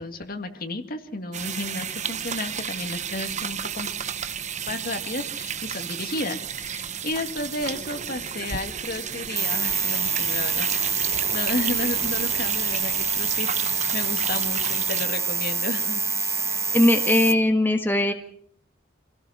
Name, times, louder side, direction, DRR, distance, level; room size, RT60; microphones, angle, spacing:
voice 1, 0.0-3.9 4.7-10.7 11.0-16.0, left 2 dB, 50° left, 6 dB, 2.0 m, -32 dB
sound 1, 1.3-15.1, right 8 dB, 40° right, 0.8 m, -33 dB
sound 2, 9.4-17.3, right 5 dB, 15° right, 1.3 m, -26 dB
voice 2, 16.7-18.1, left 1 dB, 10° left, 4 dB, 1.6 m, -19 dB
27.0 x 17.5 x 5.8 m, 0.63 s
head